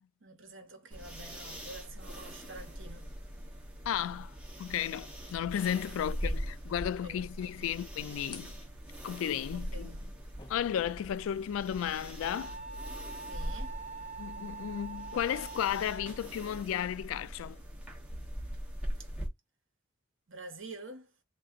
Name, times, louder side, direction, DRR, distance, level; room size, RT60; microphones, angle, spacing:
voice 1, 0.2-3.1 6.2-6.4 6.8-7.5 9.5-10.0 13.3-13.8 20.3-21.1, right 2 dB, 70° right, 1.4 m, -48 dB
sound 1, 0.9-19.3, equal, 5° right, 1.3 m, -42 dB
voice 2, 3.9-8.5 9.0-9.9 10.5-12.6 14.2-17.6, left 9 dB, 85° left, 0.3 m, -34 dB
sound 2, 5.6-11.2, left 4 dB, 25° left, 0.5 m, -58 dB
Wind instrument woodwind instrument, 12.2-16.3, right 4 dB, 35° right, 0.8 m, -44 dB
3.3 x 2.6 x 3.8 m
head